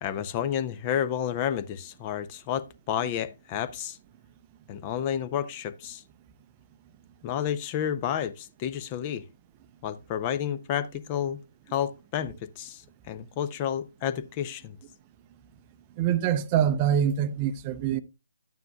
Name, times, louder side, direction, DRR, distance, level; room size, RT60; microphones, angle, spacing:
voice 1, 0.0-4.0 4.7-6.0 7.2-9.2 9.8-11.4 11.7-12.8 13.1-14.8, left 9 dB, 25° left, 0.5 m, -30 dB
voice 2, 16.0-18.0, right 9 dB, 25° right, 0.5 m, -25 dB
12.0 x 9.3 x 2.2 m
figure-of-eight pair, 145°, 0 cm